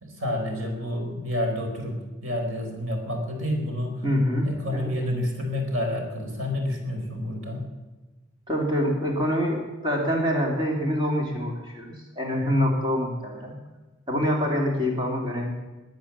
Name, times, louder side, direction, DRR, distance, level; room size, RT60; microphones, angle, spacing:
voice 1, 0.0-4.0 4.4-7.6, left 1 dB, 90° right, 2 dB, 4.1 m, -29 dB
voice 2, 4.0-4.9 8.5-13.6 14.1-15.5, equal, 25° right, -1 dB, 2.8 m, -25 dB
20.0 x 9.3 x 7.3 m, 1.2 s
head